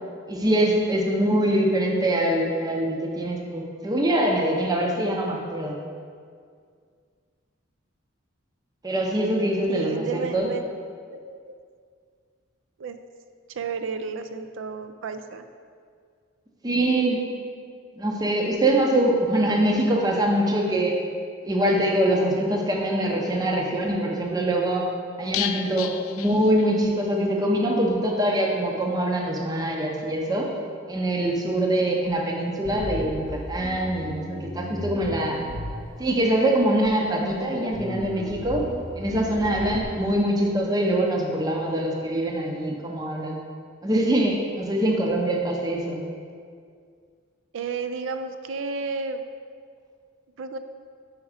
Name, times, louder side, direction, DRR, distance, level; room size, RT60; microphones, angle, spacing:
voice 1, 0.3-5.8 8.8-10.5 16.6-17.2 18.0-21.0 21.4-24.9 25.2-30.5 30.9-35.4 36.0-38.7 39.0-43.4 43.8-46.0, right 1 dB, 20° right, 0 dB, 0.6 m, -24 dB
voice 2, 9.7-10.7 11.1-11.5 12.8-13.0 13.5-15.5 47.5-49.3 50.4-50.6, right 5 dB, 70° right, 9 dB, 0.4 m, -32 dB
sound 1, 25.3-27.1 27.4-27.5 27.8-27.9, left 11 dB, 85° left, 0.3 m, -33 dB
Bass guitar, 32.6-36.2 36.8-37.4 37.7-39.8, left 1 dB, 65° left, 0.8 m, -35 dB
5.3 x 4.8 x 4.8 m, 2.1 s
head